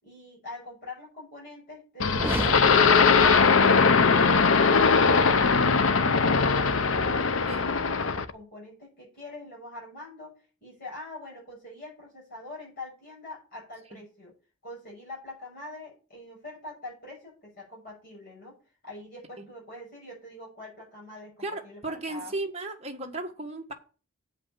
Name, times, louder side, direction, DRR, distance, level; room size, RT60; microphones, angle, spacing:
voice 1, 0.0-2.8 3.1-10.3 10.6-14.3 14.6-18.5 18.8-22.3, left 2 dB, 45° left, 6.4 m, -43 dB
sound 1, 2.0-8.3, left 5 dB, 80° left, 0.7 m, -20 dB
sound 2, 2.1-4.1, right 1 dB, 10° right, 0.5 m, -35 dB
voice 2, 21.4-23.7, right 2 dB, 30° right, 1.4 m, -35 dB
8.3 x 5.4 x 7.5 m
head